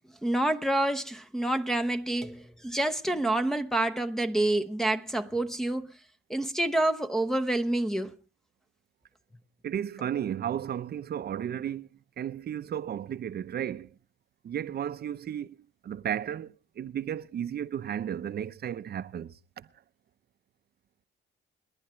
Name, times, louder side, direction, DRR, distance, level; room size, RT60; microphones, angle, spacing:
voice 1, 0.2-5.9 6.3-8.1, right 1 dB, ahead, 0.9 m, -28 dB
voice 2, 9.6-11.9 12.2-13.9 14.4-15.6 15.8-19.7, right 9 dB, 55° right, 0.7 m, -34 dB
29.0 x 11.0 x 3.2 m
cardioid pair, 90°, 20 cm